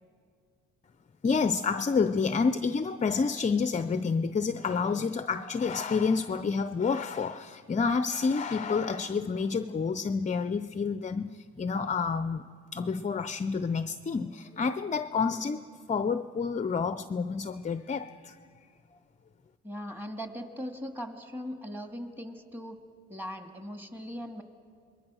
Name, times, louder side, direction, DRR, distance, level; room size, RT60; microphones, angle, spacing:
voice 1, 1.2-12.4 12.7-18.3, left 5 dB, 25° left, 0.6 m, -29 dB
voice 2, 19.6-22.8 23.1-24.4, equal, 5° right, 2.0 m, -39 dB
27.0 x 21.0 x 6.3 m
cardioid pair, 90°, 30 cm